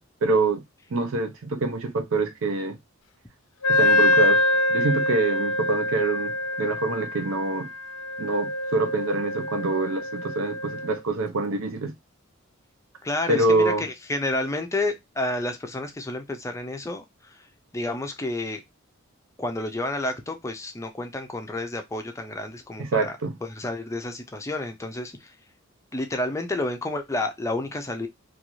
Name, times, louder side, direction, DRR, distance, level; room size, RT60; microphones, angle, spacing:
voice 1, 0.2-0.6 0.9-2.8 3.7-4.4 4.7-7.7 8.2-11.9 13.3-13.8 22.8-23.3, right 3 dB, 75° right, 0.5 m, -25 dB
Wind instrument woodwind instrument, 3.6-11.0, left 1 dB, 80° left, 0.4 m, -25 dB
voice 2, 13.0-17.5 17.7-18.6 19.4-23.1 23.4-25.4 25.9-28.1, left 2 dB, 15° left, 0.4 m, -30 dB
2.5 x 2.3 x 2.9 m
head